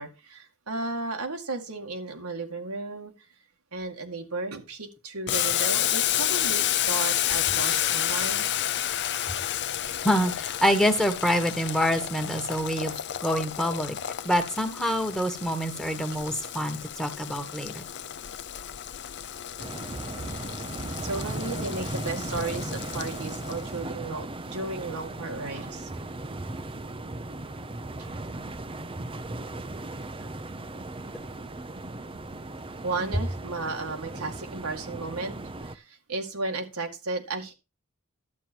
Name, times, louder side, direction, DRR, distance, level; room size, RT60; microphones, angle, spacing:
voice 1, 0.0-3.1 3.7-8.5 21.0-25.9 28.0-28.1 32.8-35.4 35.6-37.5, right 3 dB, 85° right, 3 dB, 2.2 m, -34 dB
Boiling, 5.3-23.7, left 11 dB, 55° left, 0.7 m, -31 dB
voice 2, 10.0-12.9 13.2-14.0 14.2-17.8, equal, 5° left, 7 dB, 1.5 m, -26 dB
sound 1, 19.6-35.8, right 2 dB, 25° right, 0.7 m, -37 dB
12.0 x 8.4 x 4.6 m, 0.28 s
head